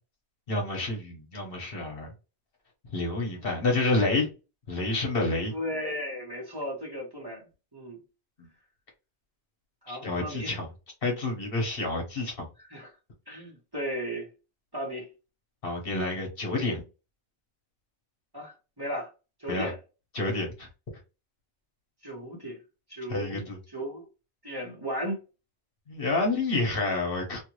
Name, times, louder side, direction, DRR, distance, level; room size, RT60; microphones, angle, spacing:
voice 1, 0.5-2.1 2.9-4.3 4.7-5.5 9.9-10.6 11.0-12.4 15.6-16.8 19.5-19.7 20.1-20.7 23.1-23.6 25.9-27.4, left 2 dB, 55° left, 1.2 m, -29 dB
voice 2, 5.5-7.4 7.7-8.0 9.8-10.6 12.7-12.9 13.3-14.3 14.7-15.1 18.3-19.1 19.4-19.8 22.0-22.6 22.9-24.1 24.4-25.2, equal, 20° right, 1.2 m, -35 dB
2.7 x 2.6 x 3.1 m
omnidirectional pair, 1.2 m